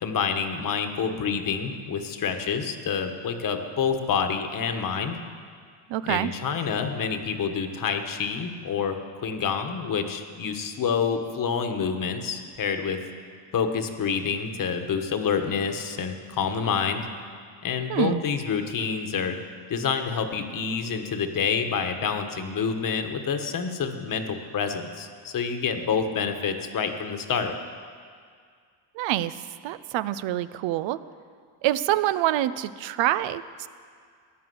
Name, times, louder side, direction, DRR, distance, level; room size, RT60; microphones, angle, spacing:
voice 1, 0.0-5.2 6.1-13.0 13.5-17.1 17.6-19.4 19.7-27.5, left 6 dB, 45° left, 6 dB, 1.4 m, -28 dB
voice 2, 5.9-6.3 17.9-18.2 29.0-29.3 29.6-31.0 31.6-33.7, right 13 dB, 75° right, 14 dB, 0.7 m, -26 dB
15.5 x 10.5 x 7.8 m, 2.1 s
cardioid pair, 125°, 45 cm